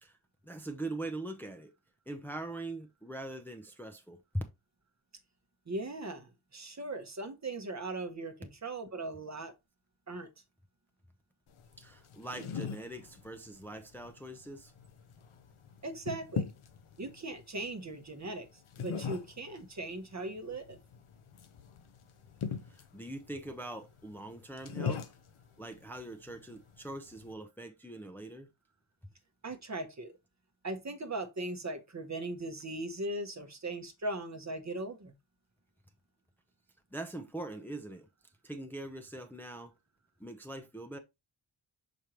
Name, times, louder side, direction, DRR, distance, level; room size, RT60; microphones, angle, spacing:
voice 1, 0.4-1.7 2.1-4.4 11.8-14.7 22.7-25.1 25.6-28.5 36.9-38.1 38.4-39.7 40.2-41.0, right 1 dB, 5° left, 0.7 m, -42 dB
voice 2, 5.7-9.5 10.1-10.3 15.8-16.5 17.0-18.5 18.8-20.8 29.4-30.1 30.6-35.1, right 2 dB, 35° right, 1.0 m, -39 dB
sound 1, 11.5-27.3, left 6 dB, 90° left, 1.0 m, -42 dB
6.2 x 5.2 x 3.0 m
wide cardioid pair, 140°, 49 cm